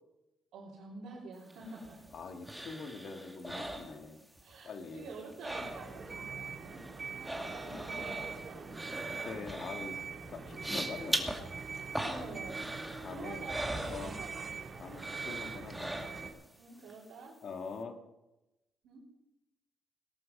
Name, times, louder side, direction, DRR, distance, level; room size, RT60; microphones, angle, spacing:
voice 1, 0.5-2.0 4.4-6.8 7.5-8.9 12.0-12.6 13.1-14.5 16.6-17.3 18.8-19.0, right 3 dB, 80° right, -6 dB, 3.7 m, -48 dB
sound 1, 1.5-4.5 4.8-6.2 6.4-14.6 14.9-16.5 16.9-17.0, right 1 dB, 5° right, 2.2 m, -41 dB
voice 2, 2.1-4.2 4.6-5.1 7.3-8.1 9.1-10.0 10.3-11.4 13.0-13.4 13.9-14.2 14.8-15.9 17.4-18.0, left 4 dB, 60° left, 5 dB, 2.0 m, -44 dB
sound 2, 5.5-16.3, right 5 dB, 40° right, 2.4 m, -43 dB
18.5 x 11.5 x 5.4 m, 0.97 s
cardioid pair, 90°, 0 cm